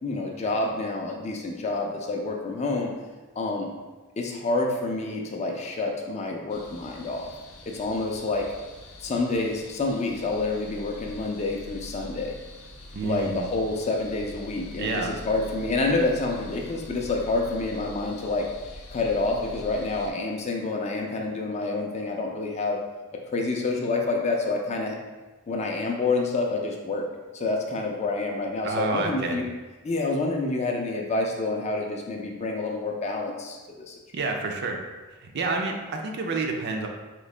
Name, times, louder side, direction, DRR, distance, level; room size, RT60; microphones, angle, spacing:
voice 1, 0.0-2.9 3.4-3.7 4.2-7.3 7.7-8.5 9.0-12.4 13.0-18.5 18.9-22.8 23.3-25.0 25.5-27.0 27.3-29.4 29.8-33.9, left 3 dB, 30° left, 1 dB, 0.4 m, -28 dB
sound 1, 6.5-20.1, left 1 dB, 85° left, 0.6 m, -44 dB
voice 2, 12.9-13.5 14.8-15.1 28.6-29.4 34.1-34.8 35.2-36.9, right 3 dB, 50° right, 2 dB, 0.4 m, -28 dB
3.8 x 2.7 x 3.2 m, 1.2 s
head